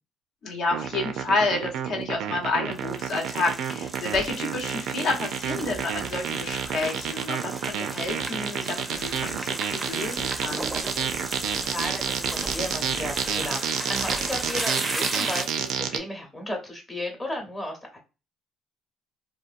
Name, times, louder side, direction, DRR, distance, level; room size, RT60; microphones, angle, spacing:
voice 1, 0.4-10.7, left 3 dB, 65° left, 2 dB, 0.9 m, -29 dB
sound 1, 0.7-16.0, right 8 dB, 75° right, 0.4 m, -30 dB
sound 2, 2.7-15.7, right 2 dB, 15° right, 0.5 m, -35 dB
voice 2, 11.7-18.0, left 1 dB, 20° left, 1 dB, 0.9 m, -34 dB
2.8 x 2.2 x 2.4 m, 0.31 s
cardioid pair, 105°, 0 cm